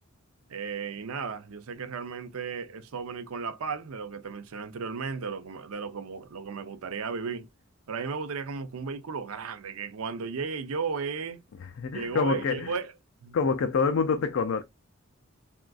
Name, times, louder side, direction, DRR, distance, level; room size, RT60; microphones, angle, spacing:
voice 1, 0.5-7.5 7.9-11.4 11.9-12.9 13.2-13.4, right 5 dB, 85° right, 0.5 m, -34 dB
voice 2, 11.6-12.7 13.3-14.6, left 5 dB, 65° left, 0.4 m, -26 dB
3.6 x 2.4 x 2.3 m
head